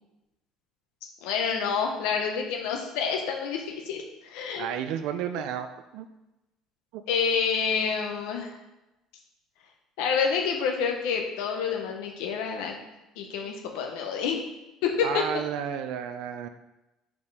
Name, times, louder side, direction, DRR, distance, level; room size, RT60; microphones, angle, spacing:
voice 1, 1.2-4.7 7.1-8.5 10.0-12.7 13.2-14.4 14.8-15.2, left 6 dB, 90° left, 2 dB, 0.9 m, -28 dB
voice 2, 4.6-5.7 5.9-6.1 6.9-7.0 15.0-16.5, right 9 dB, 60° right, 9 dB, 0.4 m, -32 dB
5.2 x 5.1 x 4.7 m, 0.96 s
cardioid pair, 175°, 0 cm